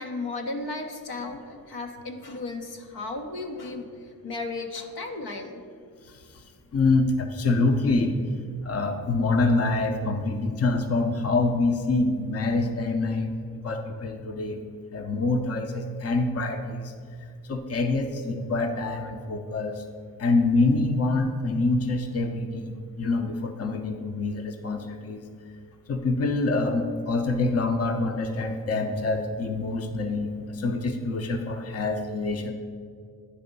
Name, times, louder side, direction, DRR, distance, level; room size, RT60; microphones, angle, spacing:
voice 1, 0.0-5.6, left 3 dB, 80° left, 4 dB, 0.9 m, -35 dB
voice 2, 6.0-6.4 6.7-8.2 8.6-14.6 14.9-16.9 17.4-19.9 20.2-22.7 23.0-25.3 25.9-32.5, left 3 dB, 40° left, 6 dB, 0.6 m, -26 dB
9.7 x 3.4 x 5.3 m, 2.2 s
cardioid pair, 85°, 38 cm